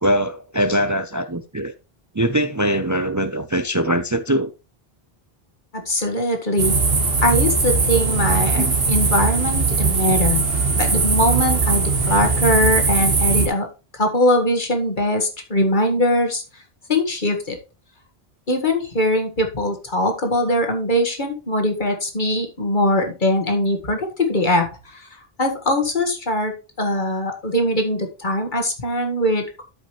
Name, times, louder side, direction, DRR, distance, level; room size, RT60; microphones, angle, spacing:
voice 1, 0.0-1.7 2.1-4.5 8.6-8.8, right 1 dB, 25° right, 0.4 m, -22 dB
voice 2, 5.7-6.8 7.2-10.4 10.7-13.7 13.9-16.4 16.9-17.6 18.5-25.1 25.4-29.6, left 1 dB, 50° left, 1.9 m, -21 dB
sound 1, 6.6-13.5, right 4 dB, 70° right, 1.8 m, -20 dB
13.0 x 5.4 x 3.1 m
omnidirectional pair, 1.0 m